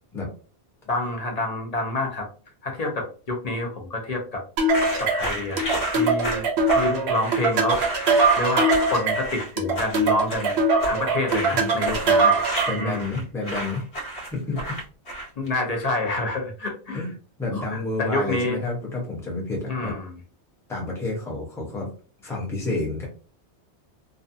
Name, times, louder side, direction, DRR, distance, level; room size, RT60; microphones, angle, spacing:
voice 1, 0.9-2.3 2.6-4.4 5.0-6.5 6.7-8.0 8.4-10.6 10.8-12.4 12.8-13.2 15.4-17.1 17.5-18.6 19.7-20.1, left 2 dB, 45° left, 1 dB, 0.6 m, -28 dB
sound 1, 4.6-12.9, right 3 dB, 70° right, 0.9 m, -22 dB
sound 2, 4.7-15.5, right 1 dB, 70° left, 1.1 m, -32 dB
voice 2, 12.7-13.9 14.3-14.8 16.9-17.1 17.4-19.9 20.7-21.9 22.2-23.1, left 2 dB, 5° left, -2 dB, 0.6 m, -29 dB
2.4 x 2.2 x 2.6 m, 0.38 s
omnidirectional pair, 1.2 m